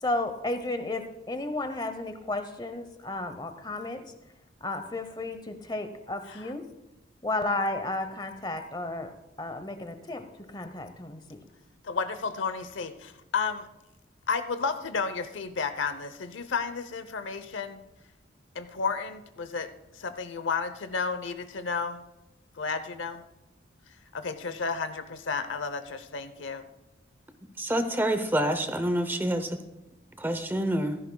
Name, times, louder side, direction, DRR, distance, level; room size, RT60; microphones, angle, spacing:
voice 1, 0.0-4.0 4.6-6.6 7.2-10.2 10.5-11.4, left 2 dB, 20° left, 9 dB, 0.9 m, -33 dB
voice 2, 11.8-13.7 14.3-17.8 18.5-22.0 22.6-23.3 24.1-26.6, left 5 dB, 85° left, 10 dB, 0.8 m, -32 dB
voice 3, 27.6-29.5 30.2-31.0, right 1 dB, 10° right, 8 dB, 0.7 m, -27 dB
15.5 x 14.0 x 2.3 m, 0.99 s
head